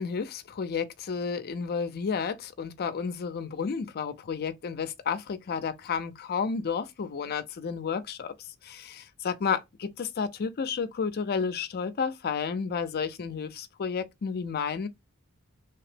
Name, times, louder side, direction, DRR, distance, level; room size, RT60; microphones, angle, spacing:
voice 1, 0.0-8.3 8.6-14.9, left 6 dB, 45° left, 0.4 m, -31 dB
2.8 x 2.0 x 3.2 m
head